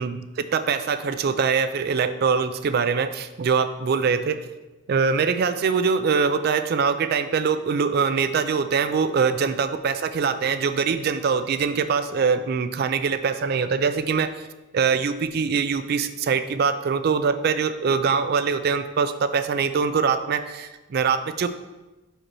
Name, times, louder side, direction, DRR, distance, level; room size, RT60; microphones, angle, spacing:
voice 1, 0.0-4.4 4.9-14.4 14.7-21.5, right 5 dB, 50° right, 11 dB, 0.3 m, -23 dB
4.9 x 4.7 x 4.3 m, 1.1 s
head